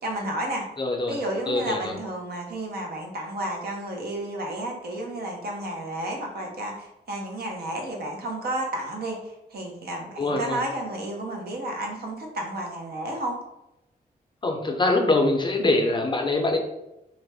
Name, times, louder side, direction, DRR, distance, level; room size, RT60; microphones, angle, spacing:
voice 1, 0.0-0.7 1.1-9.2 9.5-13.4, right 1 dB, 75° right, 0 dB, 0.7 m, -31 dB
voice 2, 0.8-1.2 1.5-1.9 10.2-10.6 14.4-16.6, left 2 dB, 30° left, 2 dB, 0.4 m, -23 dB
2.4 x 2.1 x 3.3 m, 0.87 s
wide cardioid pair, 120°, 16 cm